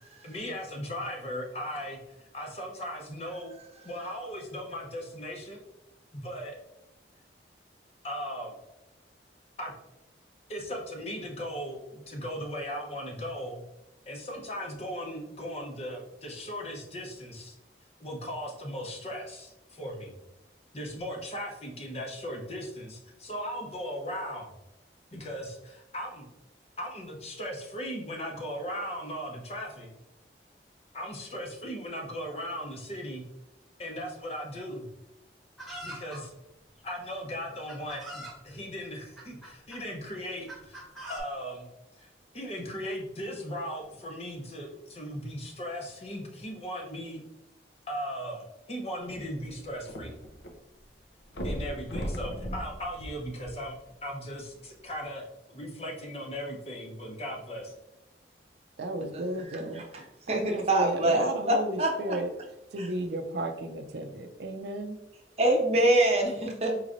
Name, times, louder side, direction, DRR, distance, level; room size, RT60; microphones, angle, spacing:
voice 1, 0.2-3.5 3.8-5.6 6.1-6.6 8.0-8.6 9.6-9.7 10.5-13.6 14.1-17.5 18.0-20.1 20.7-24.5 25.1-26.3 26.8-29.9 30.9-33.2 33.8-34.9 35.8-36.3 36.8-40.8 41.1-41.6 42.0-47.2 47.9-50.2 51.4-53.8 54.0-55.2 55.5-57.7, equal, 35° left, 1 dB, 0.8 m, -37 dB
Chicken rooster, 35.6-36.2 37.1-37.2 37.7-38.4 39.2-39.8 40.5-41.2, right 1 dB, ahead, 1.1 m, -42 dB
sound 1, 49.0-50.5 50.8-50.9 51.3-53.9 54.6-54.7, equal, 75° left, 0.7 m, -37 dB
voice 2, 58.8-59.9 60.3-62.3 62.7-65.0, right 2 dB, 75° right, 5 dB, 0.5 m, -33 dB
voice 3, 59.5-59.8 60.3-62.2 62.8-62.9 65.4-66.7, right 1 dB, 35° right, 1 dB, 0.7 m, -25 dB
4.7 x 3.1 x 2.5 m, 0.91 s
head